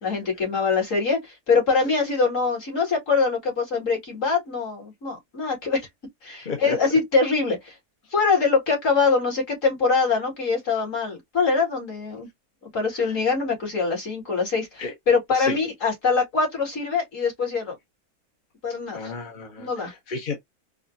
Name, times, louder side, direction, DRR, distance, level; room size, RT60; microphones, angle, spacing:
voice 1, 0.0-5.9 6.2-7.8 8.1-12.3 12.7-17.8 18.6-19.1 19.6-19.9, left 4 dB, 60° left, 2.5 m, -23 dB
voice 2, 6.5-6.8 13.0-13.1 14.8-14.9 15.3-15.6 18.9-20.4, left 4 dB, 45° left, 0.8 m, -32 dB
4.7 x 2.0 x 2.6 m
omnidirectional pair, 1.5 m